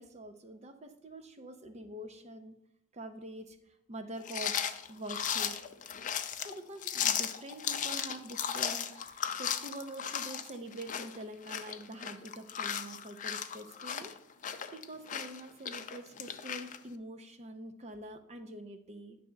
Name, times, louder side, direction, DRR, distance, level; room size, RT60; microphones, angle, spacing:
voice 1, 0.0-2.5 2.9-3.6 3.9-4.6 4.9-5.6 6.3-14.1 14.7-19.2, right 1 dB, 30° right, 6 dB, 0.6 m, -45 dB
sound 1, 4.2-16.8, left 8 dB, 35° left, 0.5 m, -36 dB
9.8 x 3.4 x 6.4 m, 0.78 s
head